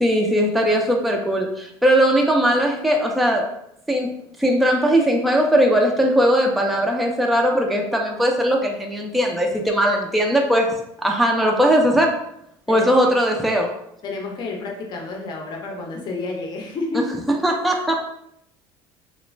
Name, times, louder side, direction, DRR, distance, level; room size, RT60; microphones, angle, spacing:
voice 1, 0.0-3.5 3.9-4.1 4.4-10.7 11.0-12.1 12.7-13.7 16.9-17.0 17.4-18.1, equal, ahead, 1 dB, 0.3 m, -19 dB
voice 2, 14.0-17.1, left 3 dB, 45° left, 1 dB, 0.6 m, -30 dB
2.4 x 2.0 x 3.1 m, 0.75 s
supercardioid pair, 110°, 11 cm